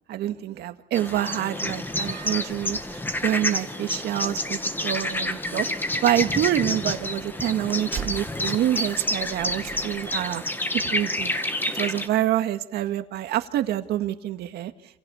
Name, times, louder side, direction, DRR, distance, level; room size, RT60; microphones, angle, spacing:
voice 1, 0.1-10.4 10.8-11.3 11.7-14.7, right 12 dB, 75° right, 8 dB, 2.0 m, -27 dB
sound 1, 0.9-12.1, left 1 dB, 10° left, 1.9 m, -29 dB
Slam, 1.8-10.2, right 7 dB, 50° right, 2.9 m, -44 dB
28.0 x 28.0 x 7.1 m, 0.82 s
cardioid pair, 110°, 17 cm